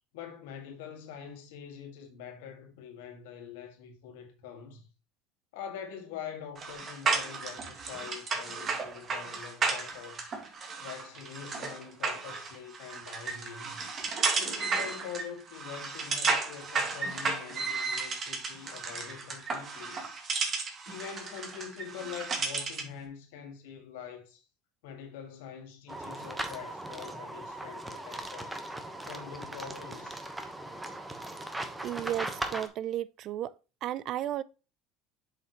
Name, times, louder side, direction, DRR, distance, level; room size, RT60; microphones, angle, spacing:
voice 1, 0.1-4.9 5.5-10.4 10.8-13.8 14.4-20.0 20.9-24.5 24.8-28.6 29.1-30.2, left 8 dB, 85° left, 1.9 m, -44 dB
sound 1, 6.6-22.9, right 4 dB, 35° right, 1.9 m, -33 dB
sound 2, 25.9-32.7, right 1 dB, 10° right, 1.1 m, -39 dB
voice 2, 31.8-33.5 33.8-34.4, right 12 dB, 50° right, 0.5 m, -33 dB
7.2 x 5.8 x 3.0 m
supercardioid pair, 110°, 0 cm